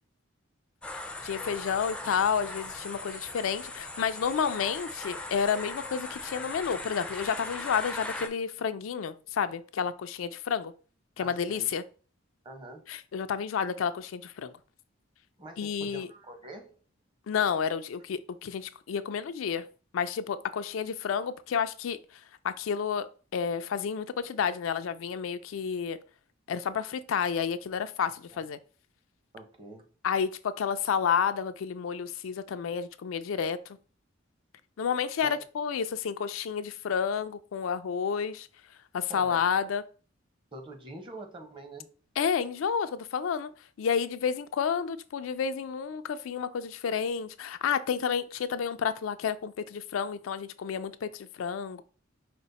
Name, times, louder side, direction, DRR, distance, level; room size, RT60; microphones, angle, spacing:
sound 1, 0.8-8.3, left 2 dB, 5° left, 0.4 m, -39 dB
voice 1, 1.2-10.7 11.2-11.8 12.9-14.5 15.6-16.1 17.3-19.7 19.9-22.0 22.4-23.1 23.3-26.0 26.5-28.6 30.0-33.6 34.8-38.5 38.9-39.8 42.2-43.5 43.8-51.8, left 7 dB, 80° left, 0.4 m, -30 dB
voice 2, 11.2-11.7 12.4-12.9 15.4-16.8 28.3-28.4 29.3-29.9 35.2-35.4 39.1-39.4 40.5-41.9, right 2 dB, 25° right, 0.9 m, -45 dB
5.1 x 2.1 x 4.0 m
head